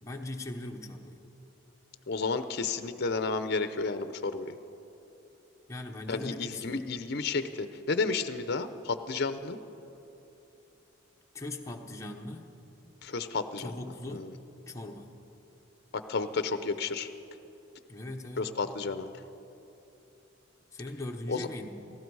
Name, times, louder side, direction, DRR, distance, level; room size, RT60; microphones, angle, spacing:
voice 1, 0.0-1.2 5.7-6.8 11.3-12.5 13.6-14.3 14.7-15.1 17.9-18.5 20.7-21.7, left 2 dB, 15° left, 2 dB, 0.9 m, -40 dB
voice 2, 2.1-4.6 6.1-9.6 13.0-13.7 14.1-14.3 15.9-17.1 18.4-19.1 21.3-21.5, left 4 dB, 55° left, 11 dB, 0.6 m, -32 dB
18.0 x 15.5 x 4.7 m, 2.9 s
head